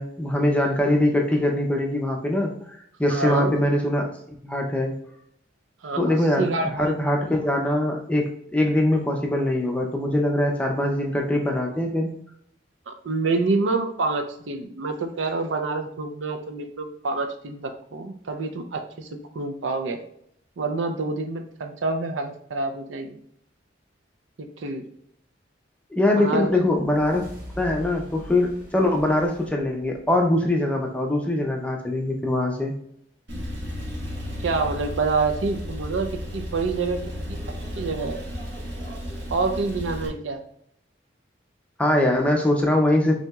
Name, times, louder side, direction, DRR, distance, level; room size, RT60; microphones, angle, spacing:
voice 1, 0.0-2.5 3.0-4.1 4.4-5.0 6.0-6.5 6.8-12.1 25.9-27.2 27.6-32.7 41.8-43.2, left 1 dB, 5° left, 1 dB, 0.5 m, -22 dB
voice 2, 3.1-3.5 5.8-6.9 12.9-20.0 20.6-23.2 24.4-24.8 26.2-26.6 34.4-37.0 37.8-38.2 39.3-40.4, right 3 dB, 85° right, 6 dB, 0.5 m, -27 dB
sound 1, 26.6-31.0, equal, 45° right, 1.0 m, -43 dB
Male speech man speaking / Car / Idling, 33.3-40.1, left 1 dB, 70° right, 1.4 m, -33 dB
5.7 x 2.8 x 2.3 m, 0.71 s
head